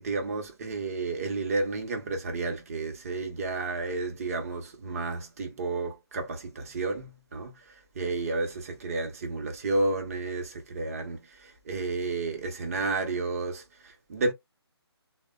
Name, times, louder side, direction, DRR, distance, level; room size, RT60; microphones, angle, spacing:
voice 1, 0.0-14.3, right 3 dB, 35° right, 0.8 m, -31 dB
3.3 x 2.1 x 2.2 m
figure-of-eight pair, 145°, 14 cm